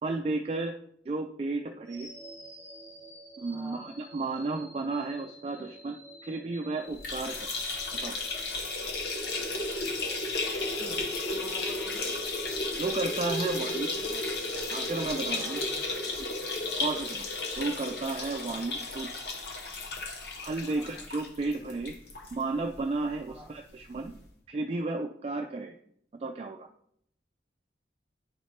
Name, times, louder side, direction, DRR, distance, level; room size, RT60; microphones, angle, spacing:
voice 1, 0.0-0.7 1.1-2.1 3.4-7.6 8.0-8.1 12.7-13.9 14.7-15.6 16.8-17.3 17.5-19.1 20.4-21.9 22.3-24.1 24.5-25.8 26.2-26.7, right 3 dB, 35° right, 4 dB, 0.3 m, -33 dB
sound 1, 1.8-14.0, equal, 15° left, 2.3 m, -50 dB
voice 2, 3.5-3.8 10.8-12.1 13.4-14.2 15.3-15.9 18.5-18.7 20.7-21.0 23.3-23.5, equal, 10° right, -1 dB, 1.5 m, -49 dB
sound 2, 6.9-22.3 22.7-22.8 23.1-23.2 24.2-24.3, left 2 dB, 60° left, 1.1 m, -33 dB
9.8 x 4.4 x 2.8 m, 0.71 s
head